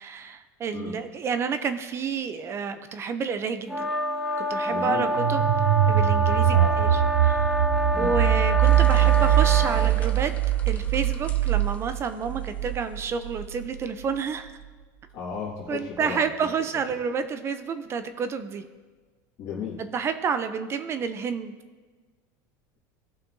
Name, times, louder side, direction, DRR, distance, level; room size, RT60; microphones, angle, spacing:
voice 1, 0.0-3.9 4.4-5.5 5.9-10.3 10.7-14.5 15.7-18.6 19.9-21.5, right 6 dB, 25° right, 10 dB, 0.5 m, -30 dB
sound 1, 3.7-9.9, equal, ahead, 1.0 m, -26 dB
voice 2, 4.7-5.1 6.5-6.7 7.9-8.1 15.1-16.3 19.4-19.8, left 5 dB, 45° left, -7 dB, 1.9 m, -34 dB
sound 2, 5.2-13.9, right 13 dB, 80° right, 0.5 m, -22 dB
sound 3, 8.6-13.0 13.4-13.5, left 4 dB, 15° left, 0.7 m, -42 dB
17.0 x 5.8 x 2.6 m, 1.4 s
supercardioid pair, 140°, 10 cm